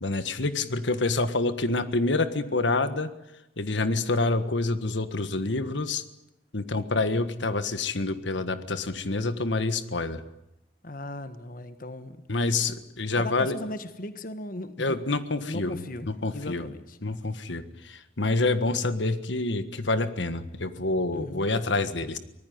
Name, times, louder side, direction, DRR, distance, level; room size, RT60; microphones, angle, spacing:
voice 1, 0.0-3.1 3.6-6.0 6.5-10.2 12.3-13.5 14.8-15.8 16.2-16.6 17.0-22.2, left 2 dB, 70° left, 11 dB, 1.6 m, -27 dB
voice 2, 10.8-12.2 13.2-15.0 15.5-17.0 21.1-21.5, left 1 dB, 45° left, 10 dB, 1.4 m, -37 dB
24.5 x 19.5 x 9.4 m, 0.86 s
head